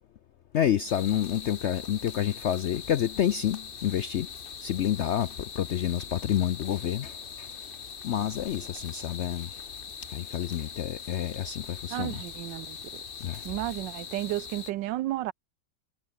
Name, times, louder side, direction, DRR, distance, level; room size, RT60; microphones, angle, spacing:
voice 1, 0.5-4.3 4.6-7.5 8.0-9.5 10.1-12.2 13.2-13.4, left 10 dB, 80° left, 0.6 m, -29 dB
sound 1, 0.9-14.7, left 6 dB, 40° left, 1.0 m, -42 dB
voice 2, 11.9-12.8 13.4-15.3, right 15 dB, 85° right, 1.3 m, -32 dB
omnidirectional pair, 1.9 m